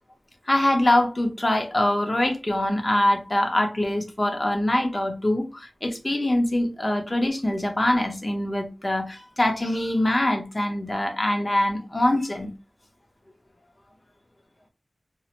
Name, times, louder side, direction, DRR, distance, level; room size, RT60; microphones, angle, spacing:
voice 1, 0.5-12.5, left 1 dB, 35° left, 0.8 m, -23 dB
2.3 x 2.0 x 2.9 m
wide cardioid pair, 55°, 0 cm